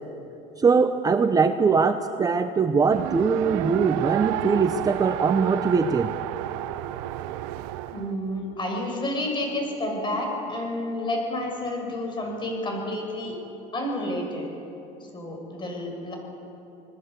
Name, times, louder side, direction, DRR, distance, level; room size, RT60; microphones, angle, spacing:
voice 1, 0.6-6.1, right 5 dB, 20° right, 8 dB, 0.9 m, -21 dB
Race car auto racing, 2.9-8.1, right 13 dB, 80° right, 1.0 m, -30 dB
voice 2, 7.9-13.3 13.7-14.5 15.1-16.2, left 1 dB, 30° left, 1 dB, 7.5 m, -30 dB
27.0 x 19.5 x 8.1 m, 2.9 s
supercardioid pair, 115°, 17 cm